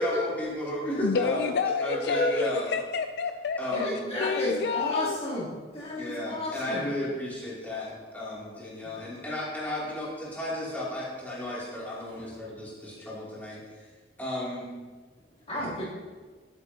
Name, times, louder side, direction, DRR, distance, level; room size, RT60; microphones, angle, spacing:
voice 1, 0.0-1.5 1.8-2.7 3.6-4.1 6.0-13.8 14.2-14.7, left 1 dB, 10° left, -8 dB, 2.6 m, -34 dB
voice 2, 1.0-3.9 4.2-5.2, left 5 dB, 65° left, 7 dB, 0.4 m, -29 dB
voice 3, 1.8-2.5 3.7-6.9 12.2-12.3 15.5-15.8, left 1 dB, 35° left, -8 dB, 2.9 m, -31 dB
11.0 x 8.9 x 2.8 m, 1.4 s
head